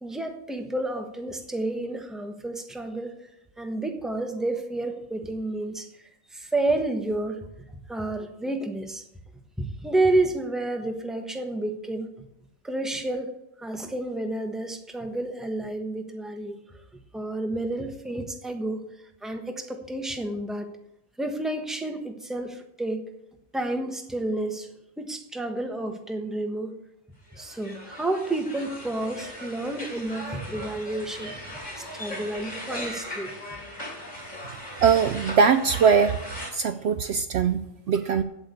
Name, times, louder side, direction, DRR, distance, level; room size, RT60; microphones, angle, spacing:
voice 1, 0.0-3.1 3.6-5.9 6.3-7.4 7.9-9.0 9.6-12.1 12.6-13.3 13.6-16.6 17.1-18.8 19.2-20.7 21.2-23.0 23.5-26.7 27.4-31.3 31.8-33.3, right 2 dB, ahead, 4 dB, 1.1 m, -30 dB
sound 1, 27.3-36.5, equal, 35° left, 3.5 m, -38 dB
voice 2, 34.8-36.2 36.5-38.2, right 6 dB, 65° right, 10 dB, 0.8 m, -21 dB
8.5 x 8.1 x 8.3 m, 0.81 s
omnidirectional pair, 1.3 m